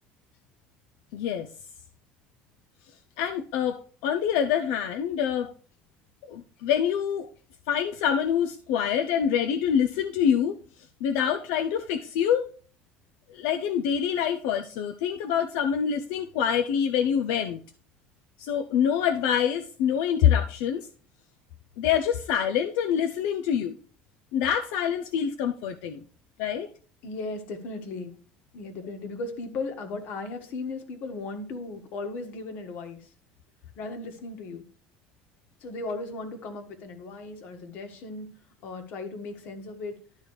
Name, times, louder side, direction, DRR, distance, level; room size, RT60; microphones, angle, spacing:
voice 1, 1.1-1.5 3.2-5.5 6.3-7.3 7.7-10.6 11.0-12.5 13.3-17.6 18.4-20.9 21.8-23.8 24.3-26.0 26.4-26.7, left 8 dB, 85° left, 0.6 m, -26 dB
voice 2, 27.0-28.2 28.5-33.1 33.8-34.7 35.6-38.3 38.6-40.0, left 3 dB, 55° left, 1.6 m, -36 dB
11.5 x 4.0 x 4.8 m
cardioid pair, 150°, 3 cm